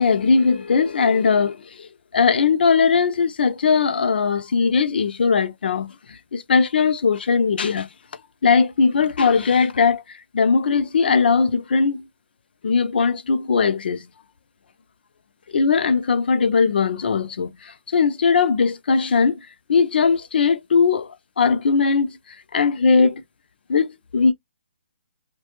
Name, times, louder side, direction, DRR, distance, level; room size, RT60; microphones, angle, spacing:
voice 1, 0.0-7.9 8.4-12.1 12.6-14.1 15.5-22.2 22.5-23.2 23.7-24.3, left 5 dB, 60° left, 0.5 m, -19 dB
2.5 x 2.2 x 2.9 m
hypercardioid pair, 170°, 6 cm